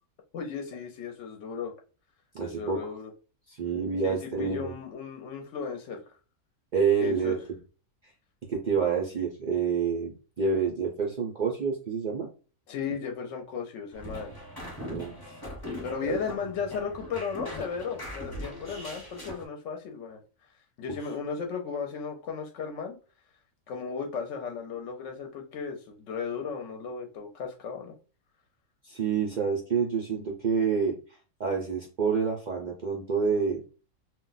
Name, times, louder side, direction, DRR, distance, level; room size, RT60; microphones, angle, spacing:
voice 1, 0.3-1.7 2.4-3.1 4.0-6.0 7.0-7.4 12.7-14.3 15.8-20.2 20.8-23.0 23.7-28.0, left 6 dB, 65° left, 3 dB, 0.8 m, -35 dB
voice 2, 2.3-2.8 3.5-4.7 6.7-7.4 8.5-12.3 14.9-15.4 16.1-16.2 18.7-19.0 20.9-21.0 28.8-31.0 31.4-33.6, right 6 dB, 65° right, 0 dB, 0.4 m, -28 dB
Spring theory, 13.9-19.4, left 1 dB, 20° left, 0.8 m, -40 dB
2.4 x 2.1 x 3.8 m, 0.35 s
omnidirectional pair, 1.5 m